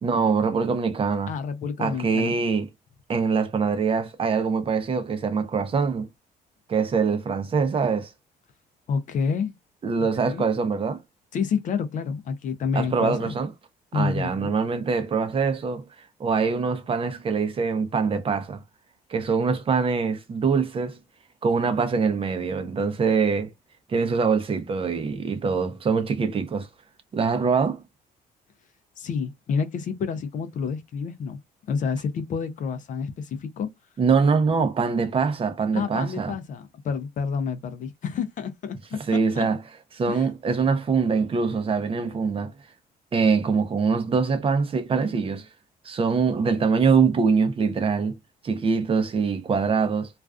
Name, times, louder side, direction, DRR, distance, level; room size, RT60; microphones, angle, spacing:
voice 1, 0.0-1.3 1.8-2.7 3.1-6.1 6.7-8.1 9.8-11.0 12.7-13.5 13.9-18.6 19.1-21.0 21.4-23.5 23.9-26.7 27.1-27.8 34.0-36.3 39.1-39.6 39.9-42.5 43.1-45.5 45.8-48.1 48.4-50.1, right 5 dB, 35° right, 0.6 m, -23 dB
voice 2, 1.3-2.3 8.9-9.5 10.2-10.4 11.3-13.3 13.9-14.5 29.0-31.4 31.7-33.7 35.7-39.0 39.3-39.4 40.1-40.3, left 6 dB, 50° left, 0.5 m, -29 dB
2.4 x 2.3 x 2.3 m
cardioid pair, 110°, 17 cm